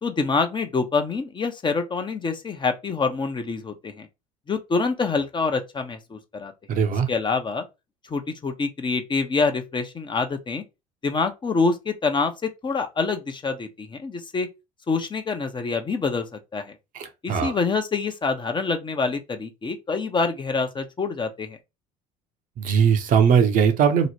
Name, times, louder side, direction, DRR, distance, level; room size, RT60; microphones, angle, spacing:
voice 1, 0.0-4.1 4.5-6.5 7.1-7.6 8.1-10.6 11.0-14.5 14.9-16.8 17.2-21.6, left 4 dB, 30° left, 0.7 m, -26 dB
voice 2, 6.7-7.1 16.9-17.6 22.6-24.1, right 7 dB, 55° right, 0.7 m, -20 dB
3.0 x 2.1 x 4.0 m
hypercardioid pair, 70°, 17 cm